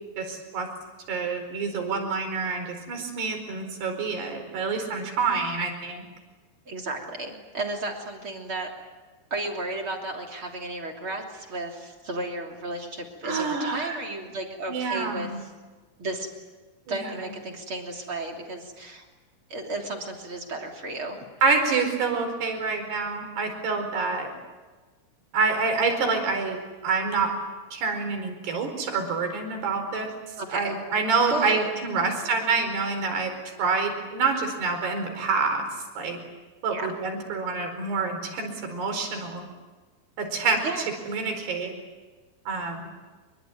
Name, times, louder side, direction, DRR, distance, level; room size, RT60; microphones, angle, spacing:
voice 1, 0.2-0.7 1.1-6.0 13.2-14.0 14.7-15.4 16.9-17.1 21.4-24.3 25.3-26.6 26.8-27.3 27.7-30.1 30.5-33.3 33.6-35.6 36.0-36.2 36.6-39.4 40.2-40.6 41.1-41.7 42.5-42.8, right 4 dB, 90° right, 5 dB, 6.7 m, -27 dB
voice 2, 6.7-8.7 9.3-15.5 16.0-16.3 16.9-19.1 19.5-21.2 30.4-30.8 31.3-31.7 32.0-32.1 36.7-37.0 40.6-40.9, right 2 dB, 35° right, 1 dB, 3.5 m, -33 dB
26.0 x 24.0 x 9.5 m, 1.3 s
omnidirectional pair, 4.6 m